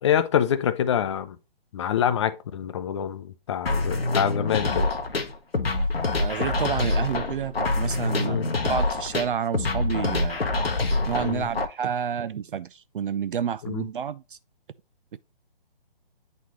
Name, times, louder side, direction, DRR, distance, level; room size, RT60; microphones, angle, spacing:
voice 1, 0.0-1.4 1.7-4.9 8.2-8.5 11.2-11.5 13.6-13.9, left 9 dB, 30° left, 0.5 m, -26 dB
sound 1, 3.6-11.6, left 2 dB, 90° left, 1.1 m, -26 dB
voice 2, 6.2-10.4 11.1-14.4, right 8 dB, 65° right, 0.4 m, -29 dB
9.0 x 4.2 x 3.1 m
figure-of-eight pair, 145°, 29 cm